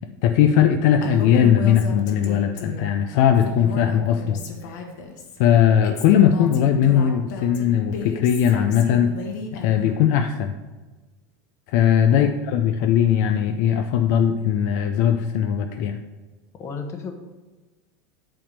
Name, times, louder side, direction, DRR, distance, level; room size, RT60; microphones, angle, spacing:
voice 1, 0.2-4.4 4.7-4.8 5.4-9.1 9.6-10.6 11.7-16.0, left 9 dB, 60° left, 6 dB, 0.5 m, -19 dB
Female speech woman speaking, 1.0-3.0 3.4-5.4 5.8-10.0, left 5 dB, 75° left, 1.4 m, -34 dB
voice 2, 16.5-17.1, left 5 dB, 30° left, 5 dB, 1.1 m, -33 dB
8.7 x 3.5 x 6.6 m, 1.2 s
supercardioid pair, 140°, 10 cm